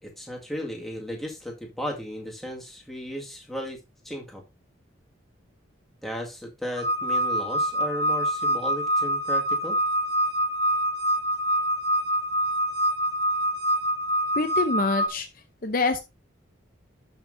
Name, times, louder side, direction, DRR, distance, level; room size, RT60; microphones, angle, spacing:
voice 1, 0.0-3.8 4.0-4.4 6.0-9.8, equal, ahead, -1 dB, 2.0 m, -35 dB
sound 1, 6.8-15.1, equal, 55° right, 1.2 m, -25 dB
voice 2, 14.3-15.3 15.6-16.0, left 3 dB, 45° left, 7 dB, 0.7 m, -25 dB
12.0 x 5.8 x 2.7 m, 0.26 s
head